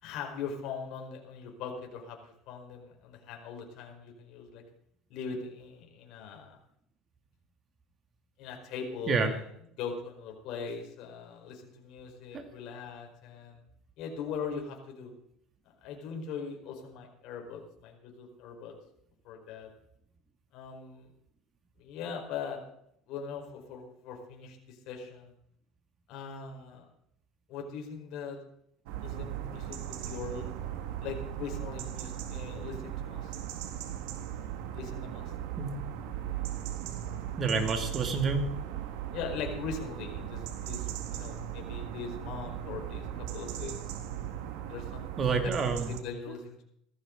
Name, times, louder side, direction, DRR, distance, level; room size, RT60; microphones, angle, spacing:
voice 1, 0.0-4.6 5.1-6.6 8.4-9.4 9.8-13.6 14.0-15.1 15.8-18.7 19.2-19.7 20.5-21.1 21.8-22.6 23.1-25.3 26.1-26.8 27.5-28.4 29.0-30.5 31.0-33.3 34.7-35.3 39.1-43.0 43.3-43.7 44.6-45.1 45.4-46.6, left 6 dB, 60° left, 1 dB, 4.7 m, -40 dB
sound 1, 28.9-46.0, right 11 dB, 80° right, 1.9 m, -38 dB
voice 2, 37.4-38.5 45.2-46.3, right 4 dB, 35° right, 5 dB, 2.6 m, -29 dB
17.5 x 14.5 x 4.0 m, 0.73 s
supercardioid pair, 125°, 0 cm